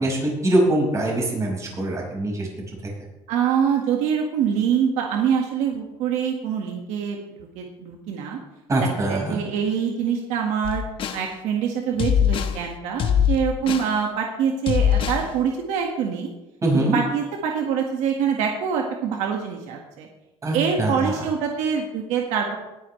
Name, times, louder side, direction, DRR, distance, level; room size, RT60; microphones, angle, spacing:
voice 1, 0.0-2.5 8.7-9.4 16.6-17.0 20.4-21.1, right 1 dB, 25° right, -1 dB, 5.4 m, -23 dB
voice 2, 3.3-7.2 7.6-8.4 8.8-10.8 11.1-16.3 16.7-20.1 20.5-22.6, right 7 dB, 75° right, 1 dB, 1.8 m, -25 dB
sound 1, 10.6-11.3 12.0-12.6 13.0-13.9 14.7-15.3, left 9 dB, 45° left, 1.1 m, -22 dB
19.5 x 10.5 x 3.3 m, 0.98 s
cardioid pair, 130°, 12 cm